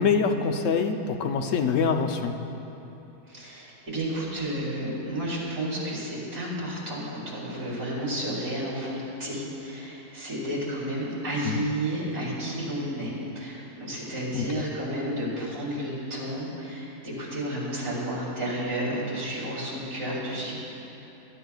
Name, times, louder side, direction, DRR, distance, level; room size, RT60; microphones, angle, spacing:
voice 1, 0.0-2.3 11.4-11.6 14.3-14.5, left 5 dB, 60° left, 5 dB, 0.9 m, -25 dB
voice 2, 3.3-20.5, right 1 dB, 65° right, -7 dB, 3.8 m, -31 dB
21.0 x 11.0 x 2.4 m, 3.0 s
omnidirectional pair, 1.7 m